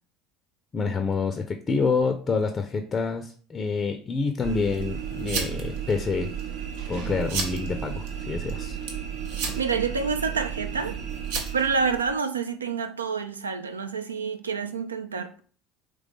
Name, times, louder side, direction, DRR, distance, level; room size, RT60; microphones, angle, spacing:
voice 1, 0.7-6.3 6.9-8.8, left 4 dB, 30° left, 0.5 m, -27 dB
sound 1, 4.4-12.1, right 7 dB, 65° right, 0.7 m, -32 dB
voice 2, 9.5-11.0 11.5-15.4, right 5 dB, 80° right, 0.3 m, -28 dB
3.7 x 3.1 x 3.5 m
figure-of-eight pair, 65°, 0 cm